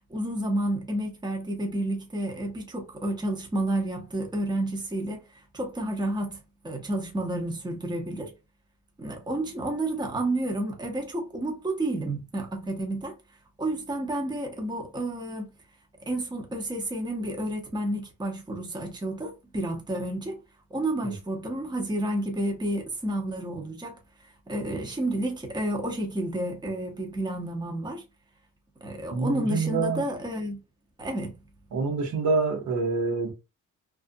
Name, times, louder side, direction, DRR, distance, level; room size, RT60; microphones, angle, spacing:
voice 1, 0.1-5.2 5.5-8.3 9.0-13.1 13.6-15.5 16.1-20.4 20.7-24.0 24.5-28.0 28.8-30.6 31.0-31.3, right 1 dB, 15° right, 0.8 m, -30 dB
voice 2, 29.1-30.0 31.7-33.3, right 4 dB, 70° right, 1.0 m, -26 dB
2.4 x 2.4 x 2.6 m
cardioid pair, 90°, 30 cm